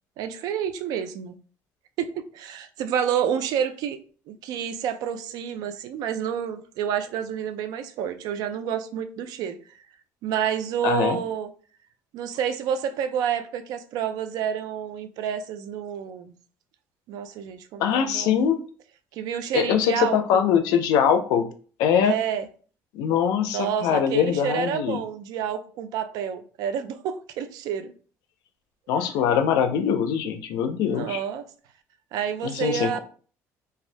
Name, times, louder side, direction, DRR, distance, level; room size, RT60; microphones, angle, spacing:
voice 1, 0.2-1.4 2.0-4.0 4.3-9.6 10.2-11.5 12.1-16.3 17.1-18.4 19.1-20.4 22.0-22.5 23.5-27.9 30.8-31.4 32.1-33.0, right 9 dB, 75° right, 0.4 m, -29 dB
voice 2, 10.8-11.2 17.8-18.6 19.5-21.5 21.8-22.2 22.9-25.0 28.9-31.2 32.4-33.0, left 8 dB, 85° left, 0.4 m, -22 dB
2.6 x 2.3 x 3.2 m
cardioid pair, 120°, 7 cm